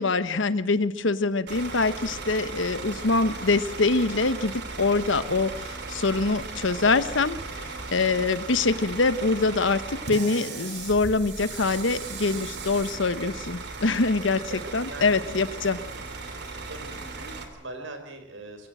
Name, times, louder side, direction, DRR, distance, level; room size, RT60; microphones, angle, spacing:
voice 1, 0.0-15.8, left 3 dB, 80° left, 14 dB, 1.1 m, -24 dB
Bus / Idling, 1.5-17.4, right 3 dB, 60° right, 2.9 m, -37 dB
voice 2, 14.5-15.5 15.8-16.0 16.7-18.7, right 2 dB, 90° right, 7 dB, 4.3 m, -42 dB
22.5 x 17.0 x 7.7 m, 0.87 s
head